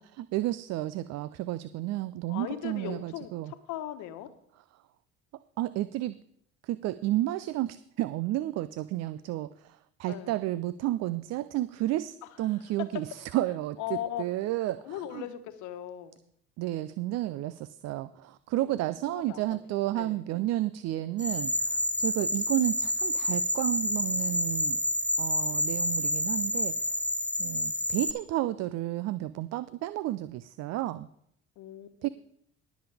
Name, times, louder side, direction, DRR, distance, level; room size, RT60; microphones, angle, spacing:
voice 1, 0.1-3.5 5.6-6.2 6.6-15.2 16.6-24.8 25.2-26.9 27.4-31.1 32.0-32.1, right 15 dB, 50° right, 15 dB, 0.5 m, -32 dB
voice 2, 2.3-4.3 10.1-10.4 12.9-13.0 13.8-14.2 14.8-16.2 18.5-18.8 19.1-19.6 20.0-20.2 31.6-32.1, left 12 dB, 60° left, 9 dB, 1.3 m, -38 dB
sound 1, 21.2-28.1, left 1 dB, 5° left, 1.2 m, -29 dB
19.0 x 7.2 x 3.5 m, 0.69 s
hypercardioid pair, 65°, 34 cm